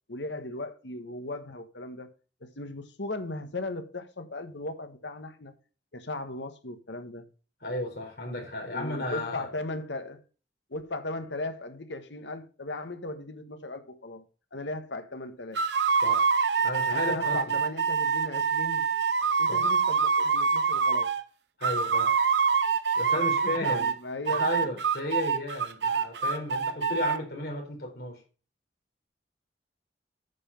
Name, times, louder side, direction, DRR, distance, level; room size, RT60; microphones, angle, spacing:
voice 1, 0.1-2.1 2.4-5.6 5.9-7.3 8.7-10.2 10.7-14.2 14.5-15.6 16.9-18.9 19.4-21.1 23.4-24.8, left 2 dB, 85° left, 1.4 m, -37 dB
voice 2, 7.6-9.5 16.0-16.2 16.6-17.6 19.5-19.6 21.6-22.1 22.9-23.9 24.3-28.2, left 1 dB, 65° left, 4.3 m, -33 dB
sound 1, 15.5-21.2 21.6-24.0 24.3-27.2, right 5 dB, 80° right, 0.8 m, -25 dB
9.3 x 5.9 x 5.3 m
head